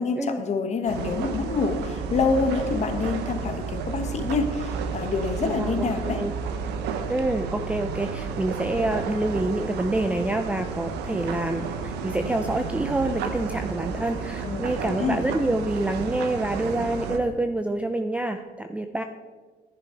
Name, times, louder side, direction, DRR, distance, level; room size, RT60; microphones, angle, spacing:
voice 1, 0.0-6.2 14.4-15.2, left 4 dB, 40° left, 7 dB, 1.4 m, -27 dB
sound 1, 0.9-17.2, right 5 dB, 85° right, 1.1 m, -32 dB
voice 2, 5.4-6.3 7.1-19.0, right 2 dB, 10° right, 7 dB, 0.5 m, -27 dB
10.5 x 10.5 x 4.5 m, 1.5 s
cardioid pair, 110°, 17 cm